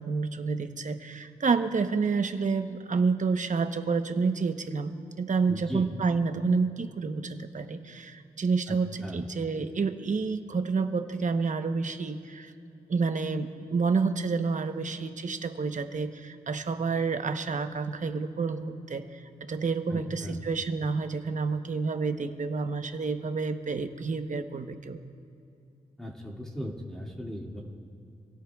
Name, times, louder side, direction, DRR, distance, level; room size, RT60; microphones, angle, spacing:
voice 1, 0.0-12.5 12.9-25.0, right 4 dB, 50° right, 7 dB, 1.0 m, -29 dB
voice 2, 5.5-5.9 8.7-9.3 19.9-20.4 26.0-27.6, equal, 5° left, -2 dB, 2.2 m, -38 dB
27.0 x 17.5 x 2.4 m, 2.6 s
cardioid pair, 75°, 17 cm